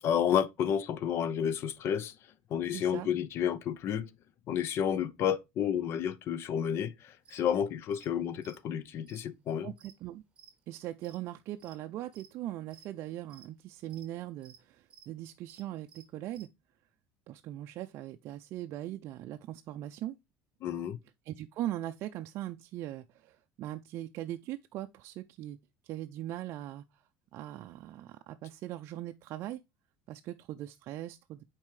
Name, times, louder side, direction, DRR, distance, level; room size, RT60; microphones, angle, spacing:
voice 1, 0.0-2.1 2.5-4.1 4.5-9.7 20.6-21.0, left 9 dB, 50° left, 0.6 m, -31 dB
voice 2, 2.7-3.1 9.6-10.2 10.7-16.5 17.3-20.2 21.3-25.6 25.8-27.0 27.3-29.6 30.1-31.4, right 13 dB, 55° right, 0.4 m, -40 dB
sound 1, 7.2-7.4 7.9-8.1 8.4-10.5 10.9-11.8 12.1-12.3 12.7-13.5 13.9-14.1 14.4-15.1 15.4-16.5, right 7 dB, 20° right, 1.4 m, -57 dB
7.3 x 4.5 x 3.1 m
cardioid pair, 125°, 5 cm